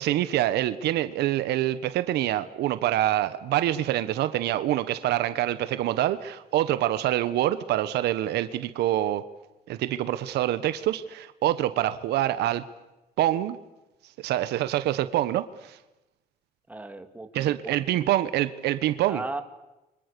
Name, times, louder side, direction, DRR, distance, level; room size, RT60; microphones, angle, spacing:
voice 1, 0.0-9.2 9.7-12.6 13.2-13.6 14.2-15.8 17.3-19.2, right 13 dB, 75° right, 1.3 m, -26 dB
voice 2, 16.7-17.8 19.0-19.4, right 2 dB, 10° right, 2.4 m, -36 dB
29.5 x 25.0 x 6.9 m
cardioid pair, 110°, 17 cm